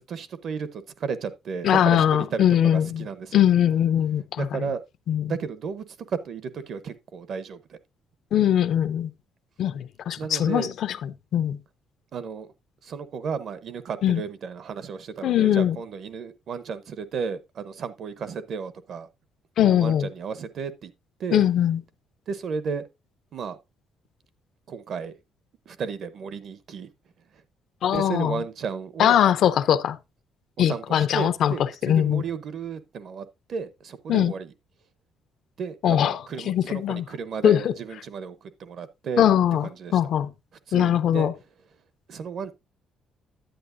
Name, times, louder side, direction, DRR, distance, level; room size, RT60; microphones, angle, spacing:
voice 1, 0.1-3.4 4.4-4.8 5.3-7.8 10.2-10.7 12.1-12.5 12.8-19.1 19.6-20.9 21.2-21.4 22.3-22.8 23.3-23.6 24.7-25.1 25.7-26.9 27.9-29.2 30.7-34.5 35.6-39.2 39.6-40.0 40.7-41.3 42.1-42.5, right 5 dB, 50° right, 0.7 m, -33 dB
voice 2, 1.6-3.1 3.3-4.7 5.1-5.3 8.3-9.1 9.6-11.6 14.0-14.2 15.2-15.8 19.6-20.1 21.3-21.8 27.8-28.4 29.0-30.0 30.6-32.2 34.1-34.3 35.8-36.2 36.5-37.0 37.4-37.7 39.2-40.3 40.7-41.3, left 10 dB, 60° left, 0.5 m, -21 dB
10.5 x 8.8 x 2.6 m
cardioid pair, 160°, 0 cm